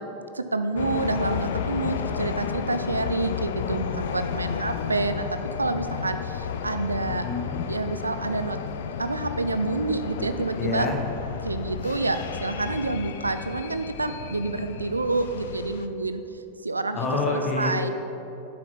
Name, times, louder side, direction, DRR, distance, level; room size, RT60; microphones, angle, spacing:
voice 1, 0.3-5.3 5.6-7.2 7.7-8.6 9.0-10.9 11.4-16.2 16.6-17.9, right 3 dB, 80° right, 9 dB, 0.5 m, -28 dB
sound 1, 0.8-15.9, left 7 dB, 55° left, 0.5 m, -32 dB
voice 2, 7.0-7.7 10.2-11.0 16.9-17.9, left 3 dB, 25° left, 0 dB, 1.7 m, -28 dB
9.1 x 6.4 x 5.9 m, 3.0 s
figure-of-eight pair, 90°, 0 cm